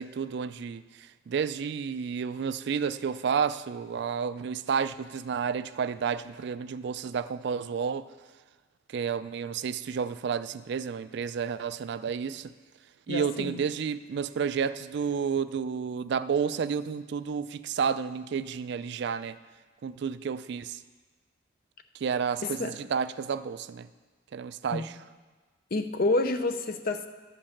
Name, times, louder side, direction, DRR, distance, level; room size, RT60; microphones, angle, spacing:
voice 1, 0.0-8.1 8.9-12.5 13.1-19.4 19.8-20.8 22.0-23.9 24.3-24.9, right 6 dB, 60° right, 14 dB, 0.3 m, -31 dB
voice 2, 13.1-13.6 22.4-22.7 24.7-24.8 25.7-27.1, left 2 dB, 45° left, 8 dB, 0.6 m, -28 dB
12.0 x 5.3 x 7.1 m, 1.4 s
head